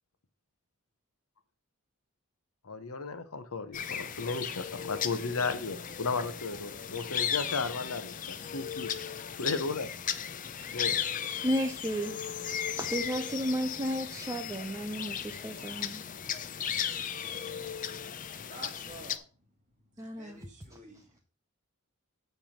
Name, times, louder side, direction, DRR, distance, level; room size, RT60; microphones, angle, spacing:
voice 1, 2.6-8.9 9.4-9.9 10.7-10.9, left 4 dB, 75° left, 1.0 m, -34 dB
sound 1, 3.7-19.2, left 8 dB, 35° left, 0.5 m, -36 dB
voice 2, 11.4-12.2 12.6-16.0 20.0-20.4, equal, 15° right, 0.6 m, -33 dB
voice 3, 18.0-19.3 19.9-21.2, right 1 dB, 35° right, 2.0 m, -50 dB
9.0 x 3.5 x 6.5 m
head